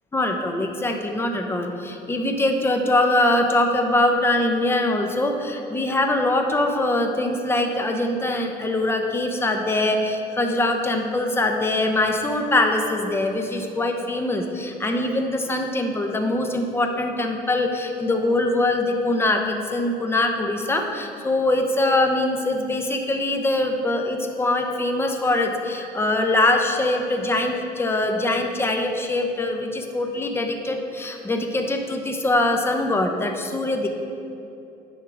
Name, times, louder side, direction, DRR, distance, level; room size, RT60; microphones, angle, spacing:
voice 1, 0.1-33.9, left 2 dB, 15° left, 3 dB, 0.8 m, -23 dB
9.6 x 3.6 x 6.0 m, 2.7 s
cardioid pair, 110°, 17 cm